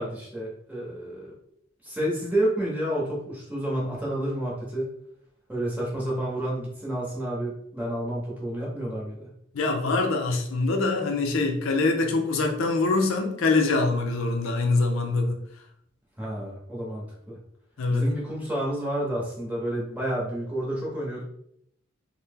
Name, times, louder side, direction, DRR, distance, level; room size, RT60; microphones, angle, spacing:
voice 1, 0.0-1.3 1.8-4.9 5.5-9.3 16.2-17.4 17.9-21.2, right 1 dB, 10° right, -5 dB, 0.9 m, -30 dB
voice 2, 9.5-15.4 17.8-18.1, left 3 dB, 80° left, 3 dB, 0.5 m, -24 dB
2.8 x 2.1 x 3.5 m, 0.72 s
head